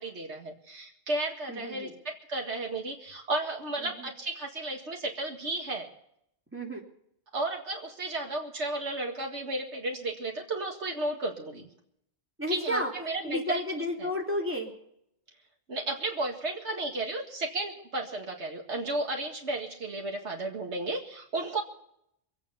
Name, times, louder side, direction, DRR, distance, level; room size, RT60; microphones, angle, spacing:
voice 1, 0.0-5.9 7.3-11.7 12.5-13.6 14.0-14.1 15.7-21.6, right 2 dB, 80° right, 1 dB, 2.3 m, -33 dB
voice 2, 1.5-2.0 3.8-4.1 6.5-6.8 12.4-12.9 13.2-14.7, left 1 dB, 10° right, -1 dB, 3.1 m, -32 dB
25.0 x 8.7 x 5.6 m, 0.73 s
omnidirectional pair, 1.1 m